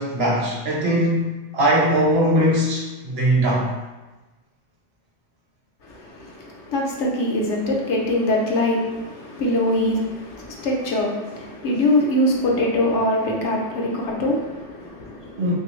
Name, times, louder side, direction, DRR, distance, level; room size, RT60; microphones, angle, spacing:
voice 1, 0.0-3.7 15.4-15.6, right 1 dB, 65° right, -3 dB, 1.0 m, -20 dB
voice 2, 5.8-15.4, left 1 dB, 75° left, -2 dB, 1.0 m, -23 dB
3.3 x 2.7 x 3.0 m, 1.2 s
omnidirectional pair, 1.2 m